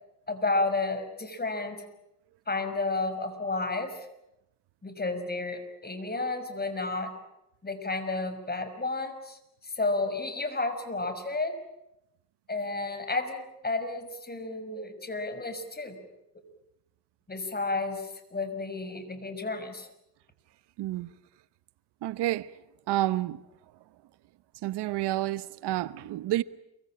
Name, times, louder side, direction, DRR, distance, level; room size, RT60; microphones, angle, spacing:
voice 1, 0.3-1.8 2.5-3.9 4.8-7.1 7.6-9.4 9.6-11.5 12.5-16.0 17.3-19.9, left 3 dB, 25° left, 6.0 m, -31 dB
voice 2, 20.8-21.1 22.0-22.5 22.9-23.4 24.6-26.4, right 15 dB, 85° right, 1.0 m, -29 dB
28.5 x 24.0 x 8.8 m
cardioid pair, 80°, 40 cm